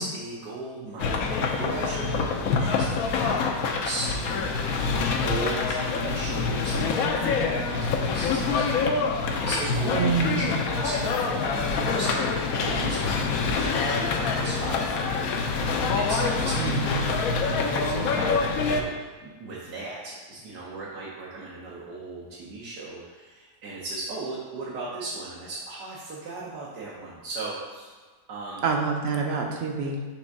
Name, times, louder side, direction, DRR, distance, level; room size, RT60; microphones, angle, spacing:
voice 1, 0.0-17.1 17.7-18.9 19.2-27.9 28.3-28.6, right 3 dB, 75° right, -7 dB, 1.5 m, -37 dB
sound 1, 1.0-18.8, left 4 dB, 65° left, 1.0 m, -26 dB
voice 2, 9.9-10.5 16.6-17.1 28.6-30.0, right 5 dB, 55° right, 2 dB, 0.7 m, -27 dB
6.1 x 3.4 x 5.3 m, 1.4 s
omnidirectional pair, 1.8 m